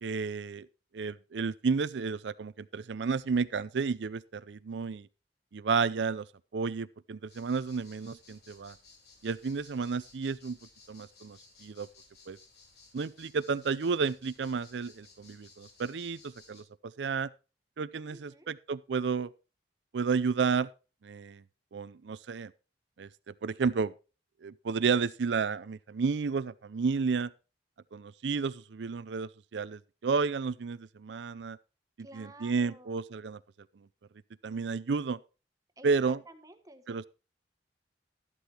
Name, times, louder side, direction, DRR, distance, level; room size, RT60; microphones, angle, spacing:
voice 1, 0.0-0.7 0.9-5.1 5.5-6.3 6.5-8.7 9.2-10.6 10.9-11.9 12.3-12.4 12.9-16.6 17.0-17.3 17.8-19.3 19.9-20.7 21.0-21.4 21.7-22.5 23.0-23.1 23.4-23.9 24.4-27.3 27.9-31.6 32.1-33.4 34.4-35.2 35.8-36.2 36.9-37.0, right 5 dB, 90° right, 0.5 m, -31 dB
sound 1, 7.3-16.6, left 4 dB, 65° left, 4.3 m, -58 dB
voice 2, 18.1-18.5 32.0-33.0 35.8-37.1, right 1 dB, 20° right, 1.2 m, -52 dB
12.0 x 11.5 x 2.9 m
head